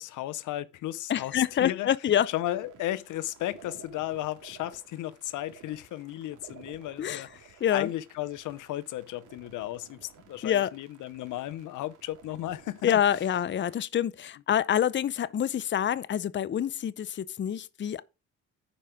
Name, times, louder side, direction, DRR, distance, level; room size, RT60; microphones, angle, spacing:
voice 1, 0.0-1.9 2.3-13.0, left 14 dB, 80° left, 0.7 m, -35 dB
voice 2, 1.1-2.3 7.0-7.2 7.6-7.9 10.4-10.7 12.8-18.0, left 10 dB, 40° left, 0.6 m, -26 dB
sound 1, 2.5-13.8, right 8 dB, 80° right, 2.5 m, -54 dB
10.0 x 5.1 x 4.9 m
cardioid pair, 90°, 30 cm